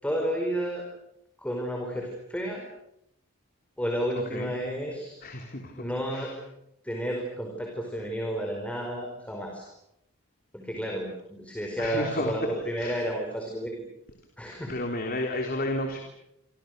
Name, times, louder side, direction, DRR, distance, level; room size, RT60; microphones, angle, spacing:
voice 1, 0.0-0.8 1.4-2.6 3.8-5.2 5.7-6.3 6.8-9.7 10.5-13.7 14.4-14.7, equal, 5° left, 1 dB, 4.9 m, -31 dB
voice 2, 5.2-5.8 6.1-6.3 11.8-12.3 12.8-13.0 14.7-16.0, left 1 dB, 45° left, 3 dB, 3.5 m, -32 dB
27.5 x 27.0 x 6.7 m, 0.81 s
head